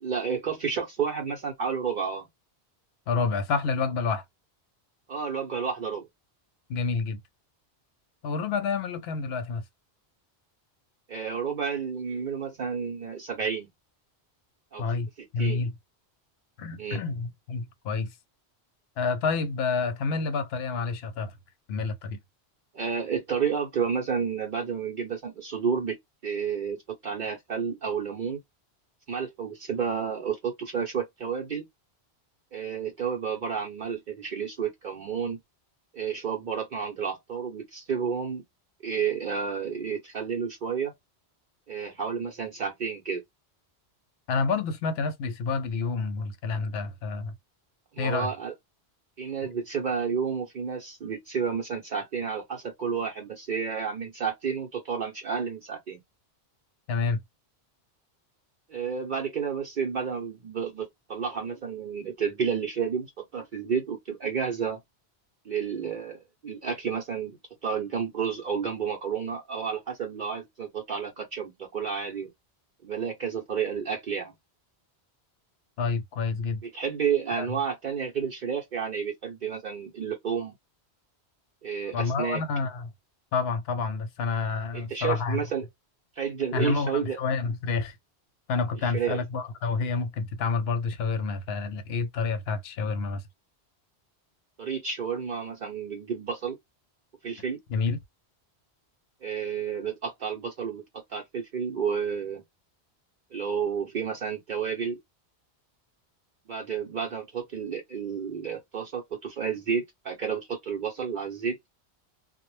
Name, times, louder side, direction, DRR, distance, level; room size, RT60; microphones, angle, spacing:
voice 1, 0.0-2.3 5.1-6.1 11.1-13.7 14.7-15.6 16.8-17.0 22.7-26.0 26.2-28.4 29.1-31.6 32.5-35.4 35.9-38.4 38.8-40.9 41.7-43.2 47.9-48.5 49.2-56.0 58.7-64.8 65.4-72.3 72.8-74.3 76.6-80.5 81.6-82.4 84.7-85.7 86.2-87.2 88.8-89.2 94.6-96.6 97.2-97.6 99.2-102.4 103.3-105.0 106.5-111.6, right 6 dB, 55° right, 0.7 m, -31 dB
voice 2, 3.1-4.2 6.7-7.2 8.2-9.6 14.8-15.7 16.6-18.1 19.0-21.3 21.7-22.2 44.3-47.3 48.0-48.3 56.9-57.2 75.8-76.6 77.4-77.5 81.9-82.9 83.3-85.4 86.5-88.0 88.5-93.2 97.7-98.0, left 4 dB, 75° left, 0.8 m, -28 dB
2.1 x 2.0 x 3.0 m
omnidirectional pair, 1.1 m